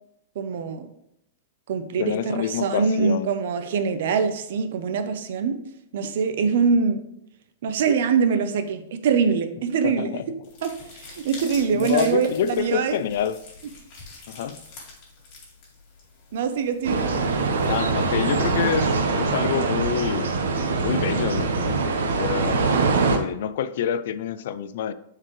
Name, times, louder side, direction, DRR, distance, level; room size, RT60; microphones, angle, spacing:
voice 1, 0.3-0.9 1.7-5.6 5.9-7.0 7.6-10.2 10.6-13.0 16.3-17.0, right 6 dB, 60° right, 9 dB, 0.7 m, -24 dB
voice 2, 2.0-3.3 9.8-10.2 11.7-13.4 14.3-14.6 17.7-20.3 20.8-22.6 23.1-24.9, left 9 dB, 60° left, 14 dB, 0.4 m, -27 dB
sound 1, 10.4-19.0, left 3 dB, 35° left, 2.3 m, -45 dB
sound 2, 16.8-23.2, right 4 dB, 90° right, 1.0 m, -23 dB
7.3 x 4.6 x 3.2 m, 0.78 s
supercardioid pair, 160°, 0 cm